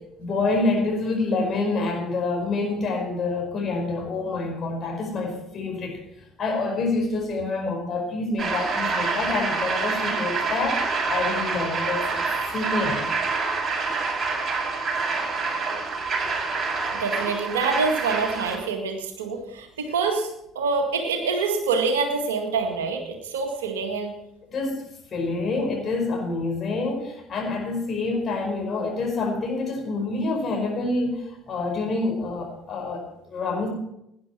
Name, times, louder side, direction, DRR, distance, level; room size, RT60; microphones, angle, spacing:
voice 1, 0.2-6.0 6.4-12.2 12.5-13.1 24.5-33.7, left 3 dB, 40° left, 2 dB, 5.0 m, -27 dB
sound 1, 8.4-18.6, right 4 dB, 30° right, 6.4 m, -27 dB
voice 2, 16.9-20.3 20.6-24.1, right 4 dB, 75° right, 5 dB, 1.8 m, -26 dB
18.0 x 10.5 x 4.5 m, 0.80 s
figure-of-eight pair, 50°, 0 cm